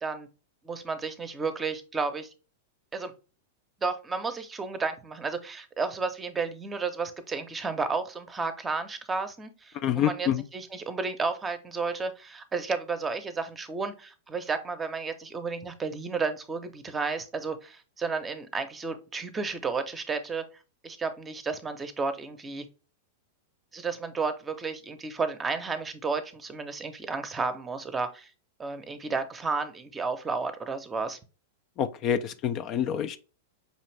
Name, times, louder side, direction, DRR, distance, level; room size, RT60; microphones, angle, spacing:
voice 1, 0.6-2.3 2.9-3.1 3.8-20.4 20.8-22.7 23.7-28.3 28.6-31.2, right 4 dB, 20° right, 0.7 m, -32 dB
voice 2, 9.8-10.4 31.8-33.2, left 9 dB, 40° left, 0.4 m, -27 dB
5.3 x 2.5 x 3.2 m
hypercardioid pair, 105°, 0 cm